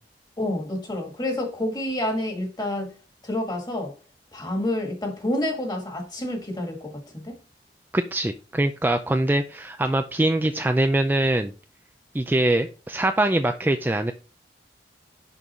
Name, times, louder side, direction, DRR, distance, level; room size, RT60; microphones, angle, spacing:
voice 1, 0.4-2.9 3.2-3.9 4.3-7.3, left 1 dB, 25° left, 1.9 m, -28 dB
voice 2, 7.9-11.5 12.1-14.1, right 1 dB, 10° right, 0.4 m, -23 dB
6.2 x 5.3 x 4.2 m
head